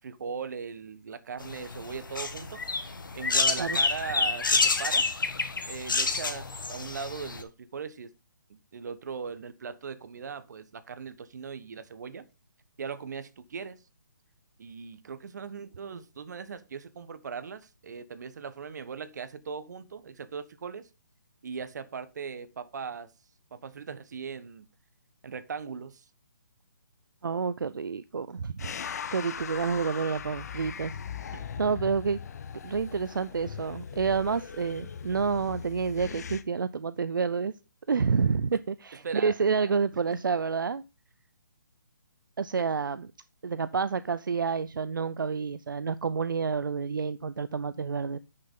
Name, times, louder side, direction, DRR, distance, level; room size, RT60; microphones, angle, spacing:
voice 1, 0.0-2.6 3.1-5.1 5.7-8.1 8.5-12.3 12.8-13.8 14.6-20.9 21.4-23.1 23.5-24.7 25.2-26.0 31.3-31.6 39.0-39.3, right 6 dB, 60° right, 1.2 m, -39 dB
sound 1, 1.4-7.4, left 4 dB, 85° left, 1.6 m, -28 dB
voice 2, 27.2-28.7 29.1-31.3 31.6-32.2 32.6-37.5 37.9-40.8 42.4-43.1 43.4-48.2, right 5 dB, 85° right, 0.5 m, -29 dB
sound 2, 28.6-36.4, left 7 dB, 55° left, 0.8 m, -39 dB
9.6 x 6.6 x 3.7 m
hypercardioid pair, 150°, 11 cm